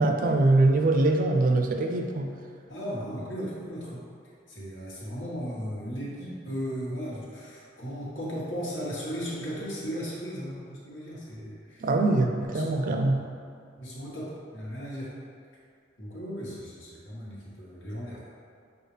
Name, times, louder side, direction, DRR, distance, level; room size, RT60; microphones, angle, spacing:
voice 1, 0.0-2.3 11.8-13.2, right 2 dB, 45° right, 3 dB, 0.4 m, -23 dB
voice 2, 2.7-4.0 4.5-11.9 12.5-12.9 13.8-15.1 16.0-18.2, equal, 80° left, -7 dB, 1.3 m, -36 dB
6.4 x 2.4 x 3.2 m, 2.4 s
head